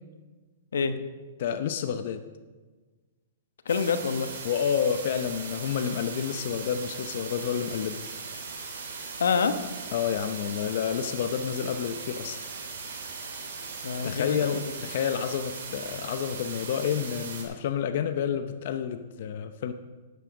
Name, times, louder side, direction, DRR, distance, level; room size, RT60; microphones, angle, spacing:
voice 1, 1.4-2.2 4.4-8.0 9.9-12.4 14.0-19.7, left 8 dB, 55° left, 8 dB, 0.7 m, -29 dB
voice 2, 3.6-4.3 9.2-9.6 13.8-14.7, left 5 dB, 90° left, 9 dB, 1.1 m, -26 dB
sound 1, 3.7-17.4, right 4 dB, 75° right, 3.8 m, -39 dB
11.5 x 9.3 x 5.9 m, 1.3 s
hypercardioid pair, 155°, 0 cm